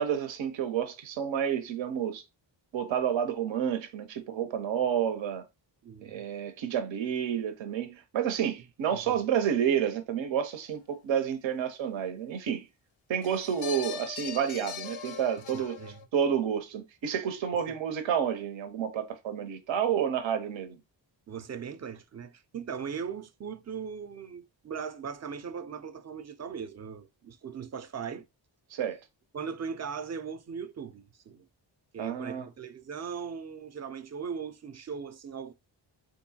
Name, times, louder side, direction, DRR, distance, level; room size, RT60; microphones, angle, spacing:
voice 1, 0.0-2.2 2.7-5.4 6.0-12.7 13.1-15.8 16.1-20.8 28.7-29.0 32.0-32.5, right 8 dB, 80° right, 0.6 m, -30 dB
voice 2, 5.8-6.2 8.9-9.3 15.5-16.0 17.7-17.8 21.3-28.2 29.3-31.5 31.9-35.5, right 6 dB, 35° right, 0.5 m, -39 dB
sound 1, 13.2-16.0, left 8 dB, 80° left, 0.6 m, -40 dB
3.7 x 2.6 x 2.7 m
cardioid pair, 70°, 46 cm